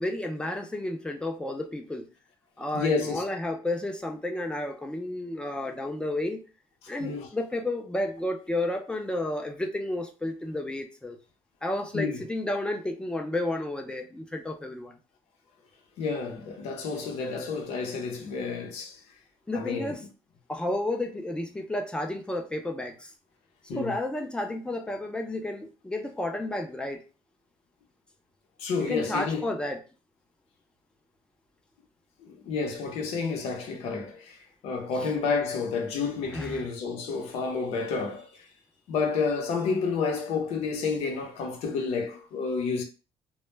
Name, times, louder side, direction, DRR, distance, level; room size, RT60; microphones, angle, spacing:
voice 1, 0.0-2.1 2.6-6.4 6.9-11.2 11.6-14.9 19.5-20.0 20.5-23.1 23.7-27.0 28.9-29.8 35.0-35.1 36.3-36.6, left 1 dB, 10° left, 0.4 m, -31 dB
voice 2, 2.7-3.2 7.0-7.3 11.9-12.2 16.0-19.0 19.5-19.9 23.7-23.9 28.6-29.5 32.2-38.3 38.9-42.8, left 4 dB, 85° left, 0.7 m, -30 dB
2.1 x 2.1 x 3.1 m
cardioid pair, 140°, 10 cm